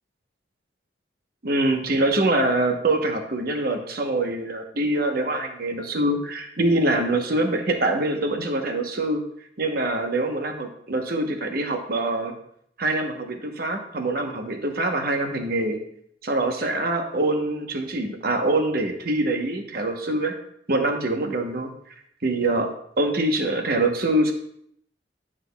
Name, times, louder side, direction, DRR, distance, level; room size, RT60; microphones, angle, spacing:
voice 1, 1.4-9.2 9.6-12.3 12.8-15.8 16.2-20.3 20.7-21.7 22.2-22.7 23.0-24.3, right 2 dB, 60° right, 4 dB, 1.0 m, -24 dB
11.0 x 6.1 x 2.3 m, 0.69 s
head